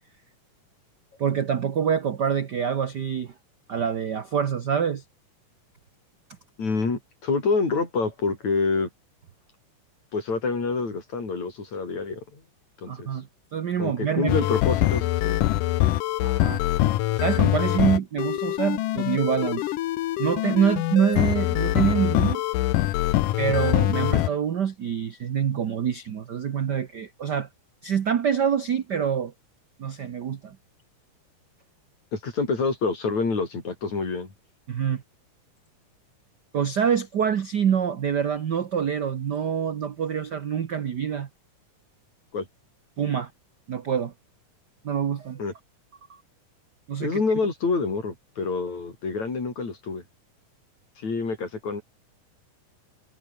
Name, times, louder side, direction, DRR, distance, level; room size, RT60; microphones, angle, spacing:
voice 1, 1.2-3.3 3.7-5.0 12.9-13.3 13.5-14.5 16.2-16.6 17.2-19.7 20.2-22.4 23.4-27.5 27.8-29.3 29.8-30.6 34.7-35.0 36.5-41.3 43.0-43.3 43.7-44.1 44.8-45.5 46.9-47.2, right 8 dB, 80° right, 0.9 m, -26 dB
voice 2, 6.6-8.9 10.1-12.4 12.8-13.1 13.8-15.4 23.5-23.6 32.1-34.3 42.3-42.5 45.4-45.5 47.0-50.0 51.0-51.8, left 4 dB, 60° left, 7.0 m, -27 dB
sound 1, 14.3-24.3, left 15 dB, 85° left, 2.6 m, -24 dB
omnidirectional pair, 3.7 m